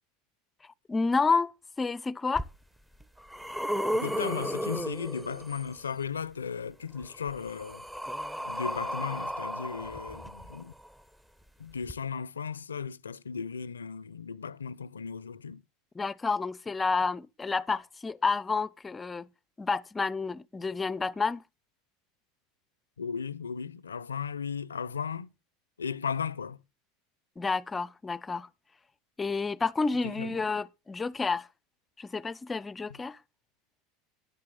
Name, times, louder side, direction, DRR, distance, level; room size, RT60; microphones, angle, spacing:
voice 1, 0.9-2.5 15.9-19.3 19.6-21.4 27.4-28.5 29.2-31.5 32.0-33.2, left 4 dB, 20° left, 0.5 m, -30 dB
sound 1, 2.4-2.5 3.0-5.8 7.0-10.9 11.8-11.9, equal, 10° right, 0.8 m, -34 dB
voice 2, 3.9-7.8 8.5-10.7 11.6-15.6 23.0-25.3 25.8-26.6 30.0-30.3, left 6 dB, 90° left, 0.5 m, -36 dB
10.5 x 10.5 x 3.8 m
hypercardioid pair, 80°, 0 cm